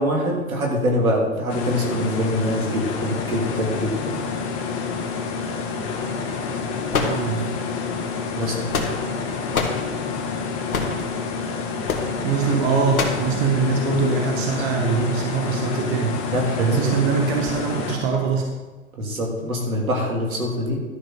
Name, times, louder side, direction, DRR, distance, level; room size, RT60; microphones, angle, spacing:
voice 1, 0.0-4.2 8.4-8.7 14.5-15.0 16.3-16.9 19.0-20.8, equal, 90° right, -1 dB, 3.1 m, -24 dB
sound 1, 1.5-18.0, left 5 dB, 35° left, 1.6 m, -28 dB
sound 2, 6.9-7.7 8.4-9.2 9.5-9.8 10.7-11.0 11.9-12.1 12.9-13.3, left 4 dB, 90° left, 1.7 m, -25 dB
voice 2, 7.0-7.6 12.2-16.2 16.6-18.5, right 5 dB, 50° right, 2 dB, 1.4 m, -23 dB
12.0 x 5.9 x 4.6 m, 1.2 s
hypercardioid pair, 125°, 41 cm